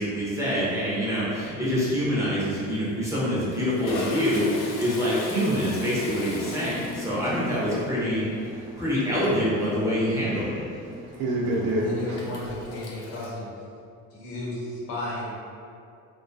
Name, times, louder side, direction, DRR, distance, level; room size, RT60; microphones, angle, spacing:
voice 1, 0.0-8.2 8.8-10.6, equal, 10° right, -9 dB, 0.5 m, -25 dB
Toilet flush, 1.1-1.5 1.7-1.9 2.9-13.3, left 3 dB, 90° left, 0.5 m, -39 dB
voice 2, 6.4-9.1 9.6-12.2, equal, 75° right, -2 dB, 0.6 m, -32 dB
voice 3, 11.7-13.5 14.1-15.3, left 1 dB, 60° left, -6 dB, 0.9 m, -34 dB
2.3 x 2.2 x 2.6 m, 2.4 s
cardioid pair, 145°, 35 cm